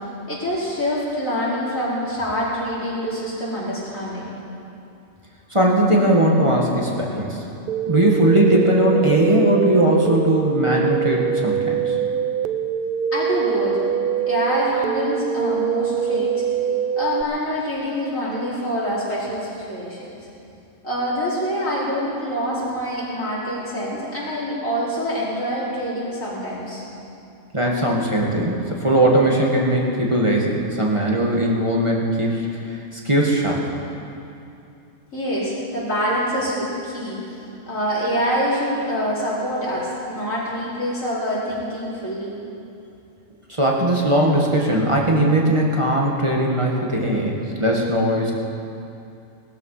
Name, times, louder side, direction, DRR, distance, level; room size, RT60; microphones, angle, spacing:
voice 1, 0.3-4.3 13.1-13.8 14.3-16.4 17.0-20.2 20.8-26.8 35.1-42.3, equal, 90° left, -8 dB, 4.9 m, -25 dB
voice 2, 5.5-7.4 7.9-12.0 27.5-33.6 43.5-48.3, right 1 dB, 25° right, -2 dB, 1.8 m, -19 dB
sound 1, 7.7-17.2, right 8 dB, 60° right, 0.6 m, -24 dB
18.5 x 13.0 x 5.7 m, 2.7 s
omnidirectional pair, 1.3 m